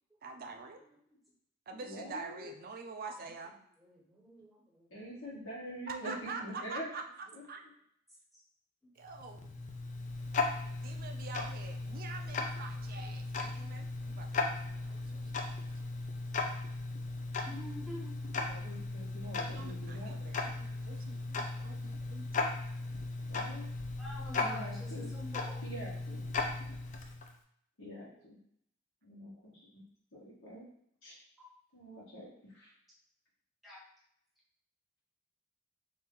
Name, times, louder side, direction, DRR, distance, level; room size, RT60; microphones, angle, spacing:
voice 1, 0.2-0.8 1.7-3.5 5.9-7.0 7.4-7.6 9.0-9.5 10.8-15.5 19.5-22.5, right 4 dB, 45° right, 4 dB, 0.4 m, -46 dB
voice 2, 1.7-2.5 4.9-6.9 7.3-7.4 18.4-20.1 23.3-23.7 24.4-25.1 25.6-26.2 27.8-28.4 29.0-29.8 30.1-30.7 31.0-31.1 31.7-32.7, equal, 75° left, -7 dB, 1.3 m, -45 dB
voice 3, 3.8-4.9 13.0-13.2 14.9-15.3 17.5-18.1 19.5-20.4 24.0-25.6 28.1-28.2 33.6-33.8, left 1 dB, ahead, -5 dB, 1.0 m, -48 dB
Tick-tock, 9.1-27.4, left 3 dB, 40° left, 0.4 m, -37 dB
2.9 x 2.6 x 3.6 m, 0.69 s
head